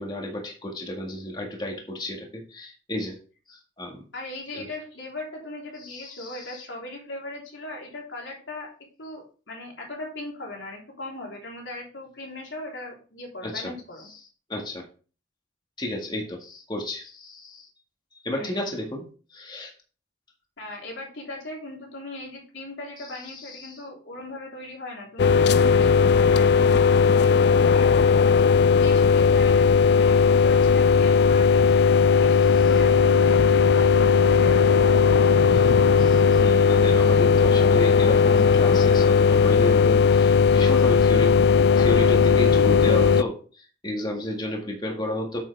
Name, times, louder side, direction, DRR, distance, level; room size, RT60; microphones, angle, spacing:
voice 1, 0.0-3.1 3.5-4.0 4.5-4.7 5.8-6.6 13.4-13.7 14.5-14.8 15.8-17.7 18.1-19.0 19.3-19.7 23.1-23.8 35.5-41.3 41.8-45.4, left 1 dB, 25° left, 1 dB, 1.8 m, -32 dB
voice 2, 4.1-8.7 9.0-14.1 18.3-18.6 20.6-27.9 28.8-35.0, left 1 dB, 90° left, -1 dB, 3.6 m, -39 dB
sound 1, 25.2-43.2, left 6 dB, 60° left, 0.3 m, -17 dB
8.6 x 7.9 x 3.4 m, 0.38 s
head